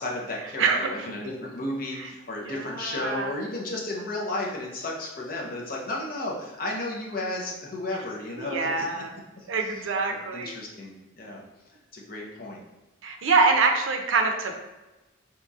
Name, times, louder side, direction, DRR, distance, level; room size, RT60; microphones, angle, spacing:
voice 1, 0.0-8.9 9.6-9.7 10.3-11.4 11.9-12.6, left 2 dB, 45° left, -2 dB, 0.6 m, -33 dB
voice 2, 0.6-1.3 2.0-2.1 2.4-3.3 8.4-9.1 9.5-10.5 13.0-14.5, right 4 dB, 80° right, 4 dB, 0.5 m, -25 dB
3.9 x 2.9 x 2.4 m, 1.1 s
head